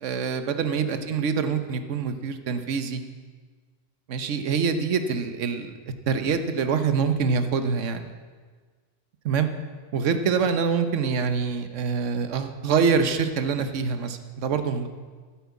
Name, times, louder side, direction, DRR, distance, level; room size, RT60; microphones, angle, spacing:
voice 1, 0.0-3.0 4.1-5.7 6.1-8.1 9.2-9.5 9.9-14.9, right 5 dB, 75° right, 9 dB, 1.2 m, -25 dB
10.5 x 9.1 x 8.3 m, 1.5 s
omnidirectional pair, 1.3 m